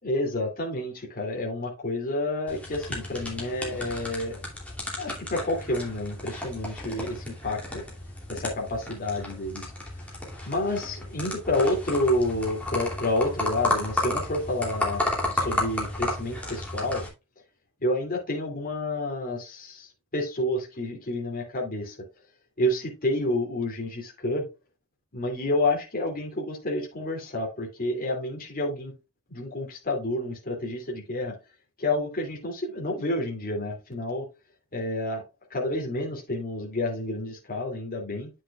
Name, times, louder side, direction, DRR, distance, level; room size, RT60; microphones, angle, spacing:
voice 1, 0.0-4.4 5.0-7.8 8.3-9.7 10.4-15.0 15.3-17.0 17.8-22.0 22.6-24.5 25.1-28.9 29.3-31.3 31.8-34.3 34.7-35.2 35.5-38.3, left 1 dB, 40° left, 0 dB, 2.7 m, -29 dB
sound 1, 2.5-17.1, left 1 dB, 5° left, 2.8 m, -33 dB
9.6 x 6.1 x 2.4 m, 0.27 s
head